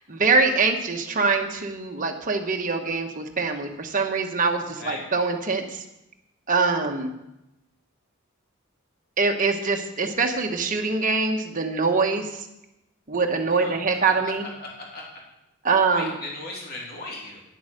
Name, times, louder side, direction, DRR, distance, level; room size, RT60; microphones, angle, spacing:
voice 1, 0.0-5.7 6.5-7.1 9.2-12.3 13.1-14.4 15.6-16.1, right 4 dB, 40° right, 3 dB, 1.2 m, -23 dB
voice 2, 14.1-15.0 15.9-17.4, left 2 dB, 50° left, -3 dB, 3.1 m, -37 dB
10.5 x 8.0 x 6.5 m, 0.90 s
head